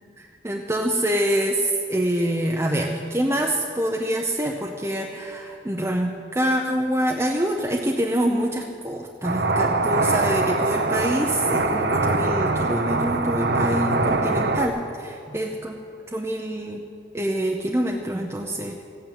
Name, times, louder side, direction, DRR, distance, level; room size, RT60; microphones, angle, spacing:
voice 1, 0.2-15.7 16.1-16.8 17.1-18.8, right 1 dB, 15° right, 0 dB, 0.7 m, -25 dB
sound 1, 9.2-14.7, right 3 dB, 55° right, 0.9 m, -23 dB
15.0 x 9.1 x 9.0 m, 2.5 s
head